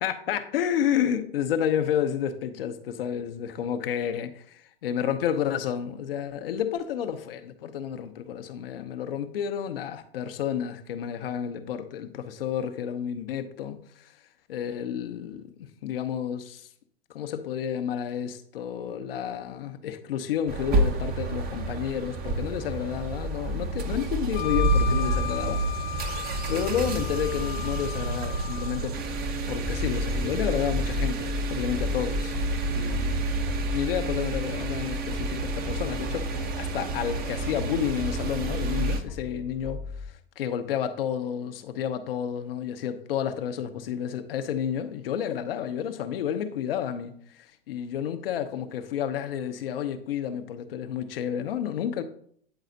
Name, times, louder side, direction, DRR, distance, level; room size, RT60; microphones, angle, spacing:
voice 1, 0.0-14.1 14.5-16.7 17.1-26.2 26.5-29.0 29.5-32.4 32.7-33.3 33.7-52.0, left 9 dB, 70° left, 0.9 m, -30 dB
sound 1, 20.5-39.0, right 2 dB, 30° right, 0.9 m, -29 dB
Wind instrument woodwind instrument, 24.3-28.8, left 11 dB, 30° left, 0.9 m, -35 dB
sound 2, 29.6-38.1 38.5-40.1, left 3 dB, 10° left, 0.5 m, -35 dB
9.1 x 4.1 x 3.9 m
hypercardioid pair, 100°, 30 cm